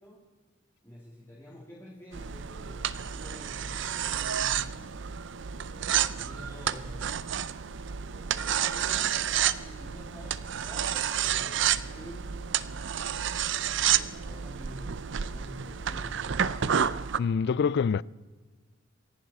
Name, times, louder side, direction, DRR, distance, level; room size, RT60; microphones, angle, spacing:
voice 1, 0.8-4.9 5.4-7.3 7.8-10.3 10.7-12.3 12.7-13.0 13.9-16.7, left 1 dB, 15° left, 2.5 m, -48 dB
sound 1, 2.1-17.2, right 9 dB, 65° right, 0.6 m, -30 dB
voice 2, 17.2-18.0, left 6 dB, 60° left, 0.4 m, -25 dB
27.5 x 11.0 x 4.2 m
head